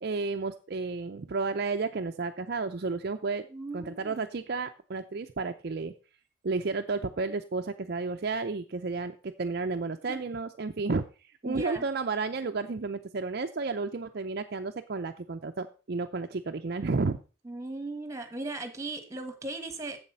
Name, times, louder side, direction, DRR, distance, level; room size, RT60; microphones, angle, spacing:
voice 1, 0.0-3.5 3.7-5.9 6.4-11.0 11.4-17.2, right 4 dB, 50° right, 6 dB, 0.5 m, -32 dB
voice 2, 3.5-4.2 10.1-10.2 11.4-11.8 17.4-20.0, right 2 dB, 15° right, 8 dB, 1.4 m, -37 dB
7.8 x 7.4 x 5.4 m, 0.34 s
head